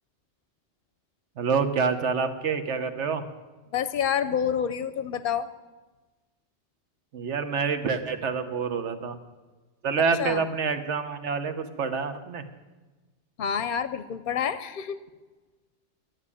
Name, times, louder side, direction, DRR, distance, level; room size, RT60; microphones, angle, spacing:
voice 1, 1.4-3.2 7.1-9.2 9.8-12.4, right 5 dB, 85° right, 9 dB, 1.3 m, -27 dB
voice 2, 3.7-5.5 10.2-10.5 13.4-15.0, left 8 dB, 55° left, 13 dB, 0.7 m, -28 dB
11.0 x 9.4 x 9.8 m, 1.2 s
omnidirectional pair, 1.2 m